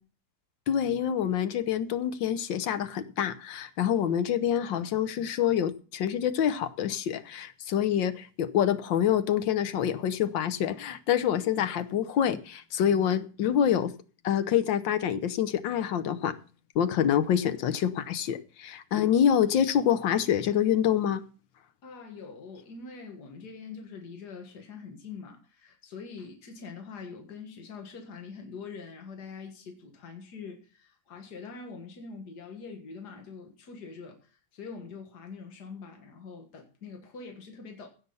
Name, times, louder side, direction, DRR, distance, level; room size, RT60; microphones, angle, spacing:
voice 1, 0.7-13.9 14.2-16.4 16.7-21.2, left 9 dB, 85° left, 1.7 m, -26 dB
voice 2, 21.8-37.9, left 5 dB, 65° left, 2.2 m, -44 dB
16.0 x 6.1 x 5.5 m
omnidirectional pair, 2.0 m